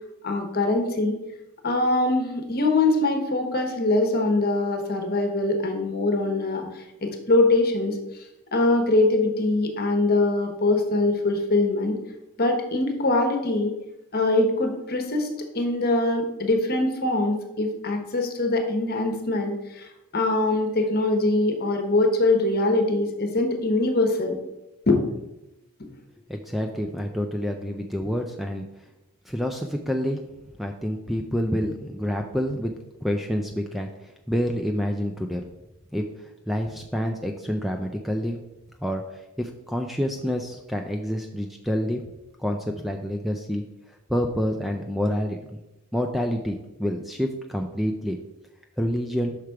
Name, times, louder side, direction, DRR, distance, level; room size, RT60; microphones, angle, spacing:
voice 1, 0.2-1.2 1.6-8.0 8.5-12.0 12.4-13.7 14.1-15.3 15.5-24.4 24.9-25.0, left 2 dB, 45° left, 4 dB, 1.0 m, -23 dB
voice 2, 26.3-28.6 29.3-30.2 30.6-32.7 33.0-35.4 35.9-38.4 38.8-42.0 42.4-45.6 45.9-48.2 48.8-49.4, equal, ahead, 3 dB, 0.3 m, -28 dB
5.9 x 4.9 x 4.5 m, 0.93 s
head